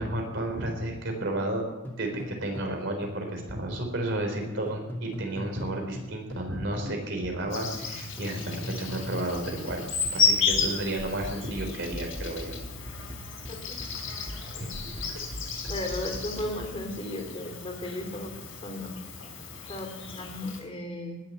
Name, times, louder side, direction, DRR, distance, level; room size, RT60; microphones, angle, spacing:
voice 1, 0.0-1.6 2.0-12.6 14.0-14.1 14.6-15.2, right 1 dB, 55° right, 2 dB, 4.0 m, -32 dB
sound 1, 1.8-2.8 3.0-6.5 6.8-16.9, left 1 dB, 10° left, 2.4 m, -40 dB
Insect, 7.5-20.6, left 4 dB, 70° left, 4.5 m, -33 dB
voice 2, 15.7-18.9 19.7-21.2, left 1 dB, 25° left, 3 dB, 3.1 m, -36 dB
19.5 x 7.6 x 9.4 m, 1.0 s
head